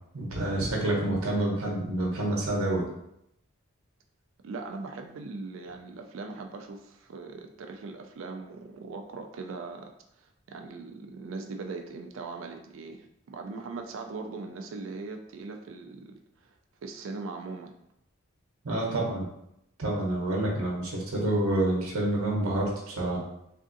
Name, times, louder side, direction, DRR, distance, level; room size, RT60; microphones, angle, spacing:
voice 1, 0.1-2.8 18.6-19.3 19.8-23.2, right 1 dB, 85° right, -2 dB, 0.8 m, -28 dB
voice 2, 4.4-9.9 10.2-16.2 16.4-17.7, right 3 dB, 65° right, 4 dB, 0.3 m, -40 dB
3.5 x 2.5 x 2.5 m, 0.79 s
head